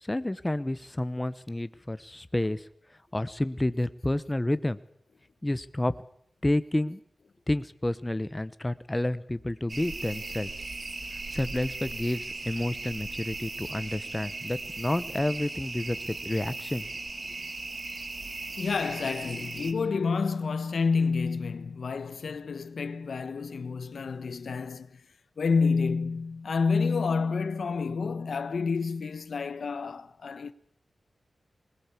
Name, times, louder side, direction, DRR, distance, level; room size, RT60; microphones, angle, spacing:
voice 1, 0.0-2.6 3.1-4.8 5.4-5.9 6.4-7.0 7.5-10.5 11.3-16.9, left 1 dB, 15° left, 0.9 m, -30 dB
sound 1, 9.7-19.7, right 3 dB, 45° right, 2.0 m, -38 dB
voice 2, 18.6-25.0 25.4-30.5, left 4 dB, 75° left, 1.1 m, -29 dB
21.0 x 19.5 x 8.4 m
wide cardioid pair, 90°, 0 cm